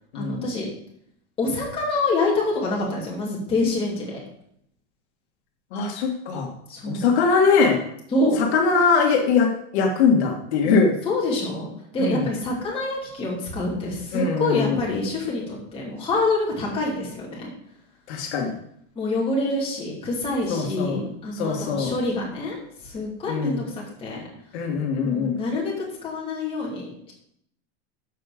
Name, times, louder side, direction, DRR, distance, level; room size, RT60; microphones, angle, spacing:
voice 1, 0.1-0.6 1.4-4.2 6.7-7.0 8.1-8.4 11.0-17.5 18.9-22.6 22.8-24.2 25.0-27.1, left 2 dB, 15° left, -4 dB, 2.8 m, -26 dB
voice 2, 5.7-6.5 6.9-7.8 8.5-10.9 12.0-12.3 14.1-14.8 18.1-18.5 20.5-21.0 21.4-21.9 23.3-23.6 24.5-25.4, left 5 dB, 65° left, 2 dB, 1.8 m, -21 dB
13.5 x 5.1 x 5.0 m, 0.71 s
supercardioid pair, 175°, 35 cm